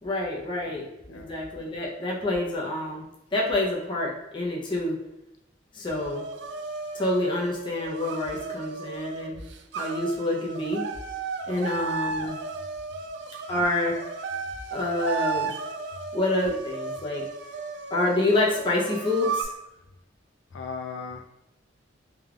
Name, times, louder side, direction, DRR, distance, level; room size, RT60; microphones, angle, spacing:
voice 1, 0.0-3.0 3.3-5.0 5.7-6.2 6.9-9.4 9.7-10.8 11.5-12.4 13.5-13.9 14.7-15.5 16.1-17.2 17.9-19.5, left 2 dB, 25° left, -3 dB, 0.7 m, -27 dB
voice 2, 0.6-1.3 20.5-21.2, left 5 dB, 75° left, 4 dB, 0.4 m, -38 dB
sound 1, 5.9-19.4, right 5 dB, 65° right, 0.3 m, -35 dB
3.5 x 3.3 x 2.4 m, 0.88 s
head